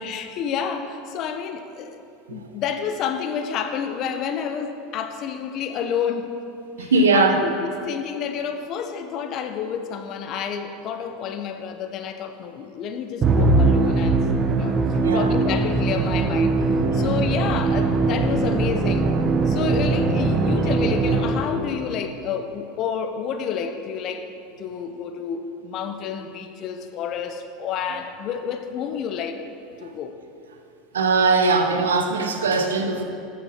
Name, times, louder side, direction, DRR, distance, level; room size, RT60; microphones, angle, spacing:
voice 1, 0.0-2.0 2.3-6.3 6.8-14.2 14.6-14.8 15.1-16.6 16.9-19.1 19.5-24.2 24.6-29.4 29.8-30.1, left 7 dB, 50° left, 7 dB, 0.7 m, -29 dB
voice 2, 6.8-7.4 15.0-15.4 29.8-29.9 30.9-33.0, right 3 dB, 80° right, 5 dB, 0.7 m, -20 dB
Musical instrument, 13.2-21.7, right 3 dB, 30° right, 0.7 m, -21 dB
13.5 x 6.2 x 2.9 m, 2.6 s
hypercardioid pair, 85°, 0 cm